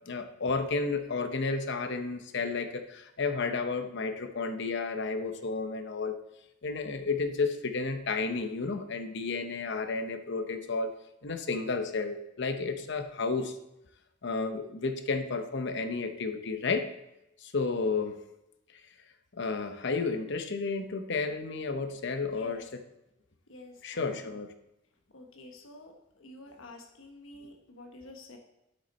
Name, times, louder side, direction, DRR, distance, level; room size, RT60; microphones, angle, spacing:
voice 1, 0.1-6.2 6.6-10.9 11.2-13.6 14.2-16.9 17.4-18.2 19.3-22.6 23.8-24.5, left 4 dB, 60° left, 8 dB, 0.8 m, -32 dB
voice 2, 22.3-22.6 23.5-24.4 25.1-28.4, left 2 dB, 90° left, 3 dB, 1.2 m, -49 dB
8.5 x 6.4 x 4.1 m, 0.89 s
head